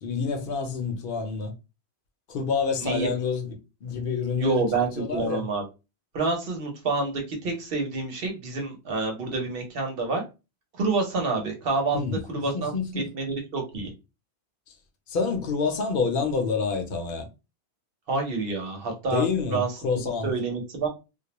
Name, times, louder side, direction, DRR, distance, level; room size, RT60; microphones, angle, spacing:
voice 1, 0.0-1.5 2.3-3.5 3.8-4.7 5.0-5.4 11.9-13.0 15.1-17.3 19.1-20.3, left 5 dB, 60° left, 0.7 m, -28 dB
voice 2, 2.8-3.1 4.4-5.7 6.1-10.2 10.8-12.0 12.3-13.9 18.1-19.3 19.5-19.7 20.2-20.9, right 3 dB, 60° right, 0.9 m, -28 dB
2.3 x 2.1 x 2.9 m
omnidirectional pair, 1.1 m